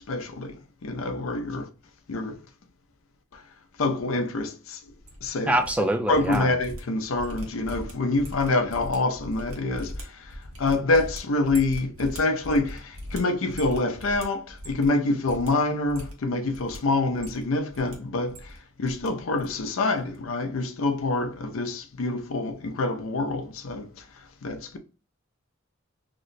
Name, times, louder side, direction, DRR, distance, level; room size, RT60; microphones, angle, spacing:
voice 1, 0.1-1.7 2.1-2.4 3.3-3.4 3.8-4.8 5.2-24.8, left 2 dB, 85° left, 0.5 m, -26 dB
sound 1, 4.9-5.8 6.0-15.0 15.2-15.5 15.8-16.8 17.1-17.9 18.2-19.1 19.4-19.7 19.9-20.2, equal, 85° right, 1.0 m, -40 dB
voice 2, 5.5-6.5, right 1 dB, 5° right, 0.4 m, -24 dB
3.0 x 2.1 x 3.8 m
head